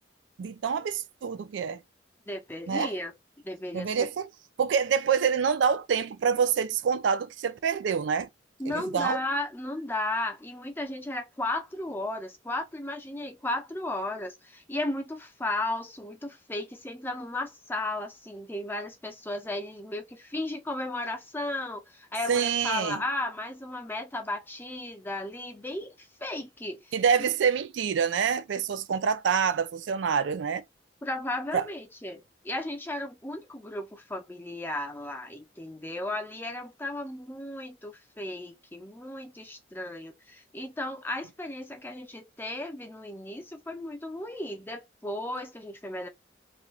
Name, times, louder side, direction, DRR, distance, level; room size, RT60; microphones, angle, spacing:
voice 1, 0.4-1.8 2.7-2.9 3.7-4.3 4.6-8.3 8.7-9.2 22.3-23.0 26.9-30.6 31.5-31.7, right 6 dB, 70° right, 0.4 m, -26 dB
voice 2, 2.3-3.1 3.4-4.1 8.6-26.9 31.0-46.1, left 1 dB, 10° left, 0.5 m, -35 dB
2.4 x 2.2 x 3.0 m
head